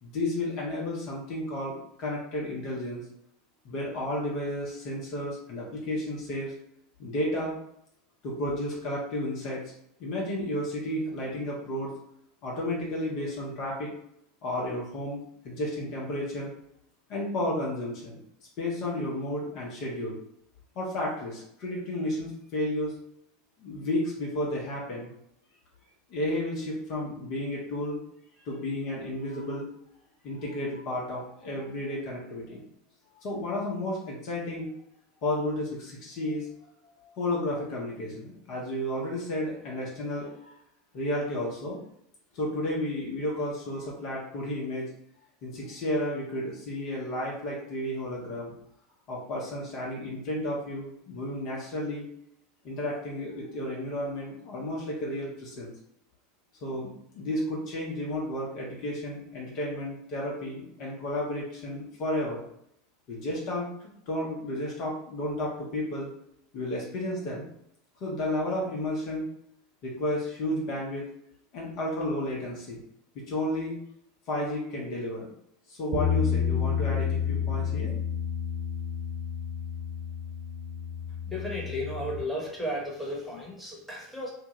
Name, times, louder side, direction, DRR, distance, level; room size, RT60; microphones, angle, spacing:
voice 1, 0.0-3.0 3.6-6.5 7.0-7.5 8.2-9.6 10.0-11.9 12.4-13.9 14.4-16.5 17.1-18.2 18.6-20.2 20.7-22.9 23.6-25.1 26.1-28.0 28.4-29.7 30.2-32.6 33.2-34.8 35.2-36.7 36.9-40.5 40.9-41.8 42.3-44.9 45.4-48.5 49.1-52.1 52.6-55.7 56.6-62.4 63.1-66.1 66.5-67.5 68.0-69.3 69.8-71.0 71.5-72.8 73.1-73.8 74.3-75.3 75.7-77.9, left 1 dB, 45° left, -3 dB, 0.9 m, -32 dB
Bass guitar, 75.9-82.2, left 7 dB, 40° right, 0.7 m, -30 dB
voice 2, 81.3-84.3, equal, ahead, -4 dB, 1.1 m, -34 dB
2.8 x 2.3 x 3.0 m, 0.72 s
figure-of-eight pair, 80°, 0 cm